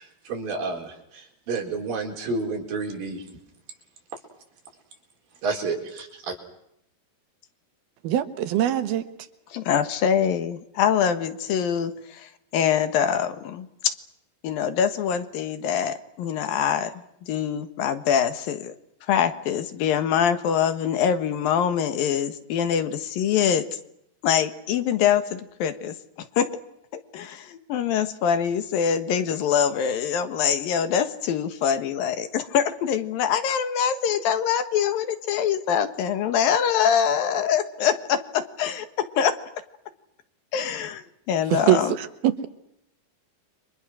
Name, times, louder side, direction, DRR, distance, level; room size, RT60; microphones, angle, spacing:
voice 1, 0.0-3.2 5.4-6.4, right 3 dB, 70° right, 2 dB, 5.9 m, -30 dB
voice 2, 8.0-9.0 41.5-42.5, right 12 dB, 85° right, 10 dB, 3.3 m, -23 dB
voice 3, 9.5-13.7 14.4-16.9 17.3-18.7 19.1-23.6 24.2-25.9 26.4-26.5 27.1-38.9 39.2-39.3 40.5-42.0, left 8 dB, 75° left, 10 dB, 3.1 m, -24 dB
30.0 x 24.5 x 6.4 m, 0.78 s
omnidirectional pair, 4.3 m